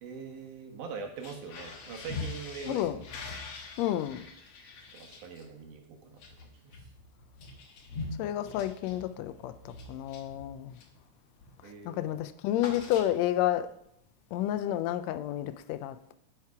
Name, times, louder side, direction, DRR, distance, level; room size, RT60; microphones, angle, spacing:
voice 1, 0.0-2.9 4.9-6.7 11.6-12.1, right 5 dB, 90° right, 2.8 m, -43 dB
sound 1, 1.1-11.0 11.4-11.7 11.9-13.5, left 3 dB, 60° left, 2.0 m, -44 dB
voice 2, 2.7-3.0 3.8-4.3 8.2-10.8 11.8-13.7 14.3-16.1, left 12 dB, 80° left, 1.6 m, -30 dB
10.5 x 5.7 x 4.8 m
omnidirectional pair, 3.5 m